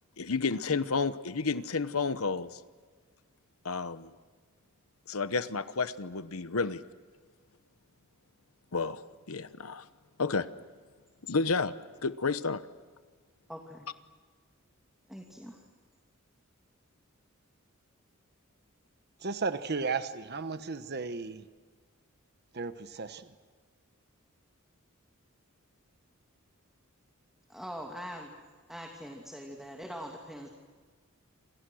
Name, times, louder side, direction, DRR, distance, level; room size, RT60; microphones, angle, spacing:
voice 1, 0.2-2.6 3.6-4.1 5.1-6.8 8.7-9.0 9.3-9.9 10.2-10.5 11.3-11.7 12.0-12.6, left 4 dB, 75° left, 13 dB, 1.0 m, -31 dB
voice 2, 13.5-13.9 15.1-15.6 27.5-28.3 28.7-30.5, equal, ahead, 0 dB, 2.6 m, -42 dB
voice 3, 19.2-21.4 22.5-23.3, right 4 dB, 50° right, 10 dB, 1.1 m, -34 dB
28.5 x 27.5 x 6.4 m, 1.5 s
head